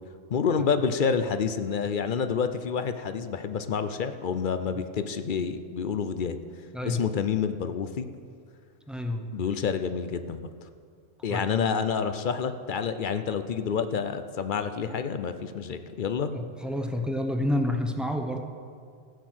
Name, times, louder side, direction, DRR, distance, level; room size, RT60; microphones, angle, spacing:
voice 1, 0.3-6.4 6.9-8.1 9.3-10.5 11.2-16.3, left 6 dB, 50° left, 10 dB, 0.6 m, -28 dB
voice 2, 6.7-7.0 8.9-9.3 11.3-11.5 16.3-18.4, left 1 dB, ahead, 4 dB, 0.7 m, -29 dB
14.5 x 8.4 x 6.1 m, 2.2 s
omnidirectional pair, 1.3 m